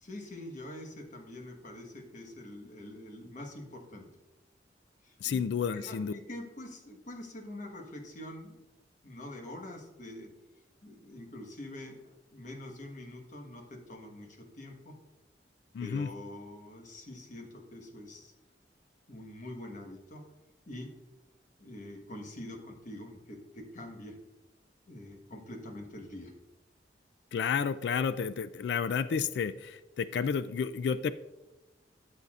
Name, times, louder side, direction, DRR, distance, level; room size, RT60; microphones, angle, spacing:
voice 1, 0.0-4.1 5.0-5.4 5.7-8.6 9.0-10.3 10.8-15.0 15.8-18.3 19.1-20.2 20.7-20.9 21.6-24.1 24.9-26.3, left 1 dB, 45° left, 3 dB, 1.3 m, -45 dB
voice 2, 5.2-6.1 15.7-16.1 27.3-31.1, left 6 dB, 70° left, 14 dB, 0.3 m, -31 dB
13.0 x 6.8 x 2.4 m, 1.0 s
head